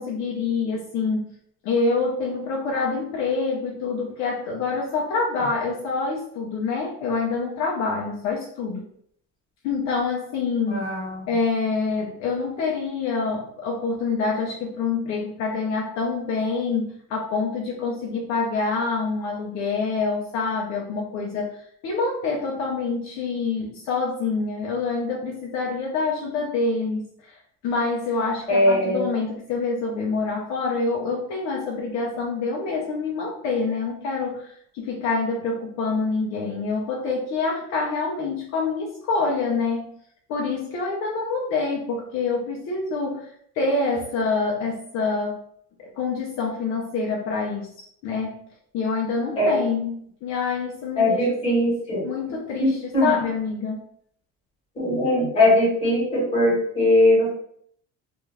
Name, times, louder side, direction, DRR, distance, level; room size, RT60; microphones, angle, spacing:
voice 1, 0.0-1.3 1.6-8.8 9.6-10.9 11.3-39.9 40.3-45.4 45.8-47.7 48.0-48.4 48.7-51.5 52.0-53.8, left 4 dB, 60° left, -2 dB, 0.6 m, -26 dB
voice 2, 10.7-11.2 28.5-29.0 49.4-49.5 51.0-52.1 52.6-53.1 54.7-57.3, left 1 dB, 20° left, -6 dB, 1.3 m, -20 dB
2.5 x 2.3 x 3.2 m, 0.65 s
cardioid pair, 170°, 31 cm